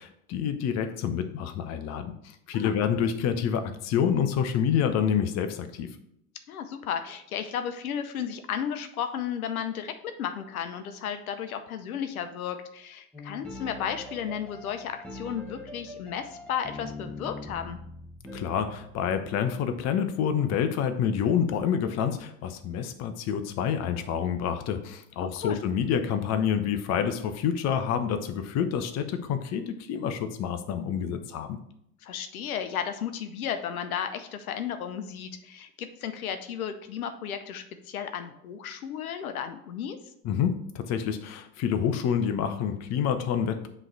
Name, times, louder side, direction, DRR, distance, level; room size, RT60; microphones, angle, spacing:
voice 1, 0.0-2.1 2.5-5.9 18.3-31.6 40.2-43.7, left 8 dB, 40° left, 9 dB, 0.7 m, -28 dB
voice 2, 6.5-17.8 25.2-25.6 32.0-40.0, left 8 dB, 75° left, 9 dB, 0.7 m, -34 dB
sound 1, 13.1-19.2, left 2 dB, ahead, 1.3 m, -42 dB
7.6 x 3.2 x 4.6 m, 0.74 s
hypercardioid pair, 80°, 43 cm